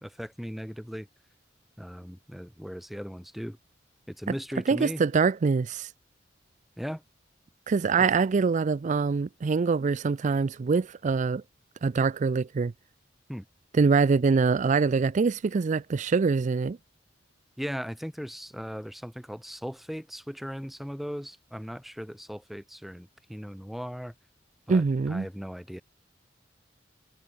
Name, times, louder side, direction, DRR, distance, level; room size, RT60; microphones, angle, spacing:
voice 1, 0.0-1.1 1.8-3.6 4.1-5.0 6.8-7.0 13.3-13.4 17.6-24.1 24.7-25.8, equal, ahead, 2.6 m, -38 dB
voice 2, 4.7-5.9 7.7-11.4 11.8-12.7 13.7-16.8 24.7-25.3, right 4 dB, 40° right, 0.4 m, -24 dB
head